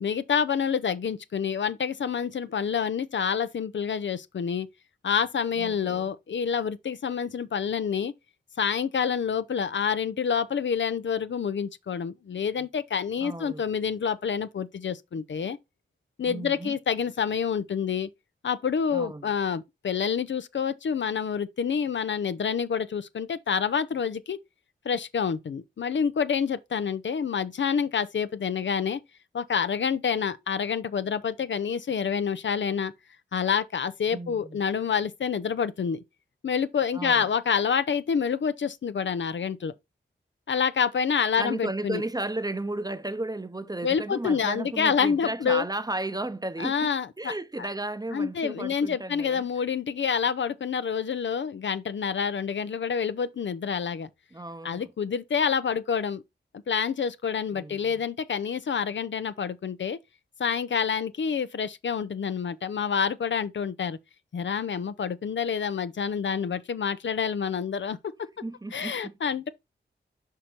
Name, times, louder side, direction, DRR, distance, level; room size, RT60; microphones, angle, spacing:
voice 1, 0.0-4.7 5.0-8.1 8.6-15.6 16.2-18.1 18.4-24.4 24.8-29.0 29.3-32.9 33.3-36.0 36.4-39.7 40.5-42.0 43.8-45.6 46.6-47.3 48.1-54.1 54.6-56.2 56.7-60.0 60.4-64.0 64.3-68.1 68.7-69.5, left 7 dB, 70° left, 0.6 m, -27 dB
voice 2, 5.5-6.1 13.2-13.6 16.2-16.8 18.9-19.3 34.1-34.6 36.9-37.3 41.4-49.5 54.3-54.9 57.5-58.0 68.4-69.2, right 2 dB, 20° right, 0.8 m, -34 dB
5.7 x 5.1 x 4.4 m
cardioid pair, 40°, 20 cm